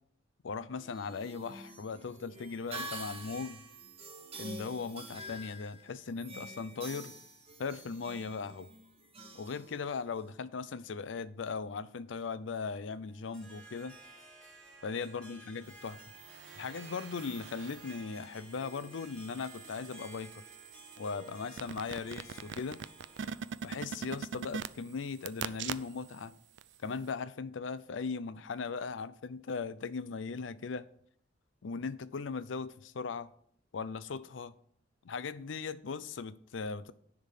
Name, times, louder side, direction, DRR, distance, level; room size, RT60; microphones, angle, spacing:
voice 1, 0.4-3.6 4.4-7.1 7.6-8.7 9.3-13.9 14.8-16.0 16.5-20.4 21.0-22.8 23.6-26.3 26.8-30.9 31.6-33.3 33.7-34.5 35.0-36.9, left 5 dB, 80° left, 0.5 m, -38 dB
sound 1, 0.8-10.3, right 1 dB, 30° right, 1.2 m, -47 dB
Harp, 13.1-23.6, right 1 dB, 5° left, 2.1 m, -54 dB
sound 2, 16.0-18.0 18.5-26.2 26.6-26.7, right 7 dB, 70° right, 0.4 m, -43 dB
10.0 x 3.6 x 6.5 m
head